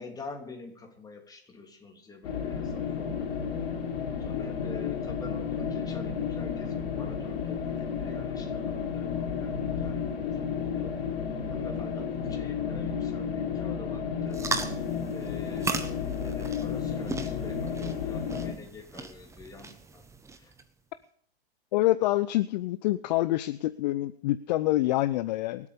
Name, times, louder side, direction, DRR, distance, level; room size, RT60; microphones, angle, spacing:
voice 1, 0.0-3.3 4.2-10.1 10.6-11.0 11.5-14.4 15.1-20.0 20.4-20.5, left 4 dB, 10° left, 2 dB, 3.1 m, -46 dB
sound 1, 2.2-18.5, left 7 dB, 60° left, 3.4 m, -32 dB
sound 2, 14.3-20.6, right 4 dB, 10° right, 1.2 m, -37 dB
voice 2, 21.7-25.7, left 16 dB, 45° left, 15 dB, 0.6 m, -26 dB
25.0 x 8.5 x 5.2 m, 0.62 s
hypercardioid pair, 115°, 32 cm